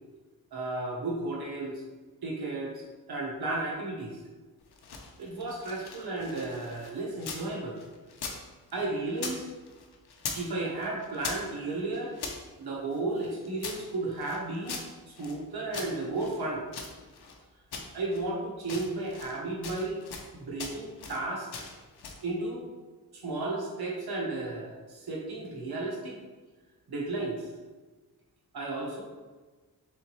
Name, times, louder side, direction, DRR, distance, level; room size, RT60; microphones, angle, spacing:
voice 1, 0.5-1.8 2.2-4.2 5.2-7.8 8.7-9.4 10.3-12.1 12.6-14.8 15.2-16.7 17.9-20.0 20.3-21.5 22.2-22.6 23.1-26.2 26.9-27.5 28.5-29.0, right 2 dB, 75° right, -2 dB, 1.1 m, -33 dB
sound 1, 4.6-7.5 7.8-9.4 9.7-10.5 10.8-12.4 12.9-15.4 15.7-17.4 17.7-18.3 18.6-19.4 19.6-20.3 20.6-21.2 21.5-22.3, left 5 dB, 90° left, 0.6 m, -41 dB
3.9 x 3.5 x 3.1 m, 1.3 s
cardioid pair, 55°, 38 cm